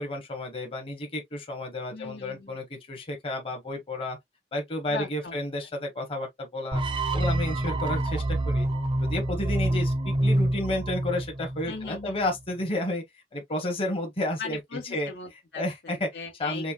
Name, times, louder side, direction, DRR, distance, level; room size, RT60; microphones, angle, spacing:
voice 1, 0.0-4.2 4.5-6.8 7.1-8.7 9.0-13.0 13.3-14.6 14.9-15.1 15.5-16.1 16.4-16.7, left 1 dB, 30° left, 1.0 m, -31 dB
voice 2, 1.9-2.6 4.9-5.4 11.7-12.3 14.4-16.7, left 4 dB, 80° left, 1.4 m, -39 dB
sound 1, 6.7-11.8, right 1 dB, 30° right, 0.6 m, -27 dB
5.1 x 2.2 x 2.3 m
head